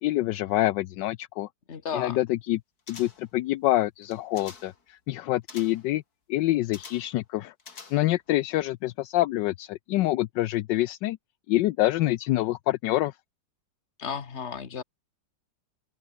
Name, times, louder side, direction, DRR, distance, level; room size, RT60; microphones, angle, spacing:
voice 1, 0.0-1.5 1.9-2.6 2.9-6.0 6.3-7.5 7.9-11.2 11.5-13.1, left 16 dB, 80° left, 1.2 m, -26 dB
voice 2, 1.7-2.2 14.0-14.8, left 7 dB, 40° left, 1.7 m, -33 dB
sound 1, 2.9-3.4 4.0-4.8 5.5-5.9 6.7-7.2 7.6-8.3 8.6-8.7, left 5 dB, 55° left, 3.0 m, -47 dB
open air
omnidirectional pair, 2.0 m